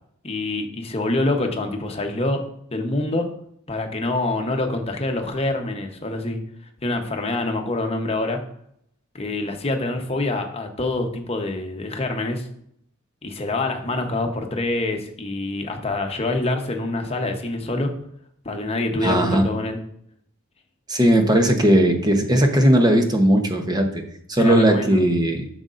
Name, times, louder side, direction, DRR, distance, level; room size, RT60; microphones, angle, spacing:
voice 1, 0.2-2.4 2.7-3.3 3.7-6.4 6.8-8.4 9.1-12.5 13.2-17.9 18.4-19.8 24.4-25.0, left 2 dB, 30° left, 4 dB, 0.9 m, -26 dB
voice 2, 19.0-19.5 20.9-24.0 24.3-25.5, right 1 dB, 20° right, 4 dB, 0.9 m, -18 dB
9.5 x 6.5 x 2.5 m, 0.70 s
head